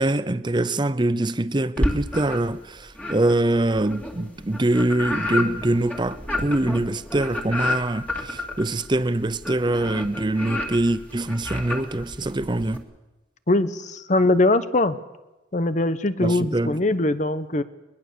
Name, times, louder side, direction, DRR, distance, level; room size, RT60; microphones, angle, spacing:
voice 1, 0.0-12.8 16.2-16.8, right 1 dB, 25° right, 0.6 m, -24 dB
sound 1, 1.8-2.6 2.9-12.8, left 1 dB, 10° left, 2.2 m, -30 dB
voice 2, 13.5-15.0 15.5-17.6, left 2 dB, 40° left, 0.9 m, -21 dB
21.5 x 21.5 x 6.8 m
head